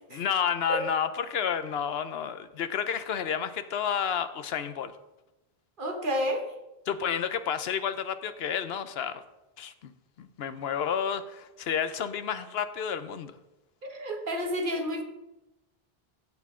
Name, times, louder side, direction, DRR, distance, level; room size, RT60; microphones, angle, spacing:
voice 1, 0.1-4.9 6.9-9.2 9.6-9.9 10.2-13.3, left 7 dB, 80° left, 11 dB, 0.9 m, -30 dB
voice 2, 5.8-6.5 13.8-15.0, equal, 55° right, 3 dB, 1.5 m, -30 dB
15.0 x 5.6 x 3.7 m, 0.97 s
omnidirectional pair, 1.0 m